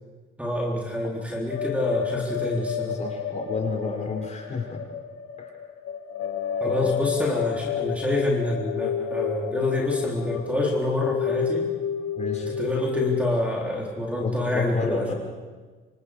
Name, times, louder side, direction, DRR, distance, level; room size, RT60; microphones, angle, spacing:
voice 1, 0.4-3.0 6.6-11.7 12.4-15.1, left 1 dB, 5° right, -2 dB, 3.7 m, -27 dB
sound 1, 1.5-13.3, left 7 dB, 85° left, 1.7 m, -31 dB
voice 2, 2.9-4.8 5.4-5.5 6.6-7.0 12.2-12.5 14.2-15.1, left 4 dB, 35° left, 0 dB, 6.0 m, -31 dB
28.0 x 26.0 x 5.0 m, 1.4 s
cardioid pair, 135°, 21 cm